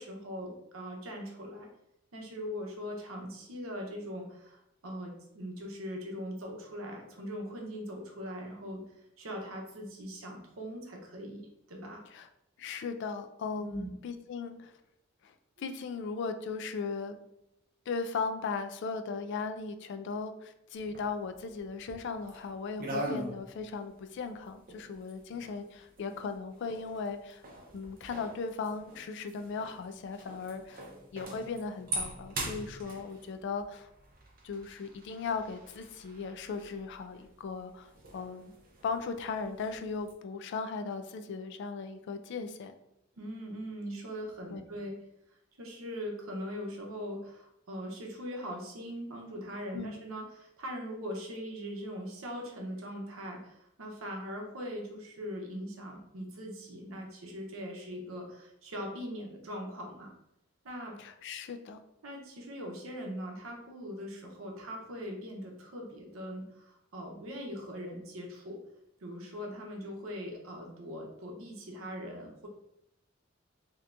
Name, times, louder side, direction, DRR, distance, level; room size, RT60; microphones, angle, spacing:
voice 1, 0.0-1.7 2.1-12.0 13.6-13.9 14.4-14.6 43.2-45.0 45.6-60.1 60.6-61.0 62.0-68.6 69.0-72.5, equal, 80° right, 1 dB, 0.8 m, -41 dB
voice 2, 12.6-14.7 15.2-17.2 17.9-27.4 27.7-30.8 31.1-33.9 34.4-38.5 38.8-42.7 44.5-44.6 49.7-50.0 61.0-61.8, left 4 dB, 60° left, 8 dB, 0.3 m, -37 dB
sound 1, 20.8-22.5 22.8-40.1, right 1 dB, 45° right, 0.7 m, -43 dB
3.3 x 2.8 x 2.5 m, 0.80 s
head